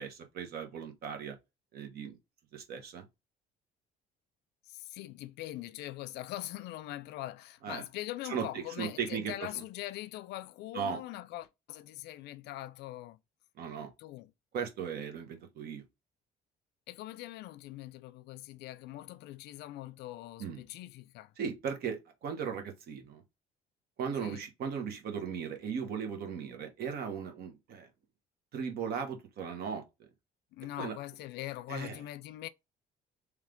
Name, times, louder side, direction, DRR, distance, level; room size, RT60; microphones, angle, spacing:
voice 1, 0.0-1.4 1.7-2.2 2.5-3.1 7.6-7.8 8.2-9.6 10.7-11.0 13.6-13.9 14.5-15.8 20.4-20.6 21.4-23.2 24.0-27.9 28.5-29.8 30.8-30.9 31.7-32.0, right 7 dB, 65° right, 1.1 m, -37 dB
voice 2, 4.7-13.2 14.0-14.3 16.9-21.3 24.2-24.4 30.5-32.5, left 15 dB, 80° left, 0.4 m, -42 dB
3.2 x 3.2 x 3.7 m
cardioid pair, 110°, 17 cm